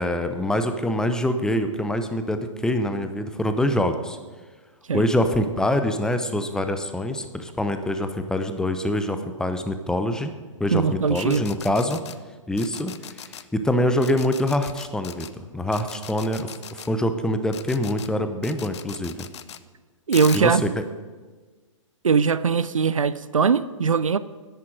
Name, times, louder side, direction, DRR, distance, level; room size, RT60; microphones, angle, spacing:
voice 1, 0.0-4.2 4.9-10.3 10.6-12.0 12.5-19.3 20.3-20.6, left 1 dB, 5° left, 0.7 m, -25 dB
voice 2, 10.7-11.4 20.1-20.6 22.0-24.2, right 6 dB, 80° right, 0.6 m, -20 dB
sound 1, 11.1-12.2 12.6-13.4 14.0-15.3 15.7-16.9 17.5-18.1 18.4-19.6 20.1-20.4, left 9 dB, 60° left, 0.8 m, -39 dB
10.5 x 8.5 x 9.0 m
figure-of-eight pair, 125°, 17 cm